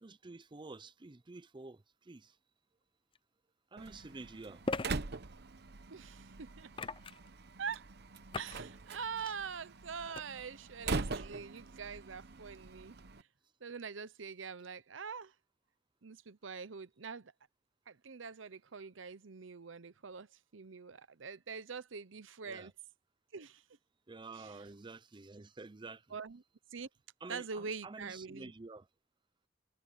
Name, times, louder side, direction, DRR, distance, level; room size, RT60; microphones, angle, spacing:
voice 1, 0.0-2.4 3.7-4.6 22.4-22.7 24.1-26.1 27.2-28.9, right 3 dB, 25° right, 0.6 m, -49 dB
sound 1, 3.1-3.2 4.6-4.9 6.7-7.3 8.3-8.6 9.0-9.3 10.1-10.2, left 3 dB, 25° left, 0.6 m, -38 dB
Slam, 3.8-13.2, right 3 dB, 60° right, 0.9 m, -43 dB
voice 2, 5.9-6.7 7.6-7.9 8.3-13.0 13.6-15.3 16.0-17.3 17.9-22.7 23.3-23.6 24.3-24.6 26.1-26.4 26.7-26.9 27.3-28.5, right 5 dB, 80° right, 0.8 m, -44 dB
head